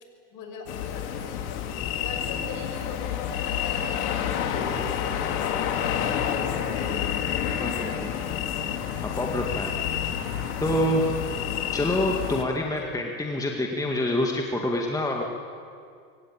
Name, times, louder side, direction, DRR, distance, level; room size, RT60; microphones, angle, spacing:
voice 1, 0.3-1.6 2.0-7.0 7.4-8.3 12.8-13.1, left 4 dB, 45° left, 4 dB, 6.0 m, -40 dB
sound 1, 0.7-12.4, left 9 dB, 75° left, 2.5 m, -29 dB
voice 2, 7.6-8.1 9.0-9.7 10.6-11.1 11.7-15.2, left 1 dB, 10° left, 0 dB, 2.0 m, -26 dB
24.0 x 17.0 x 8.8 m, 2.3 s
hypercardioid pair, 105°, 43 cm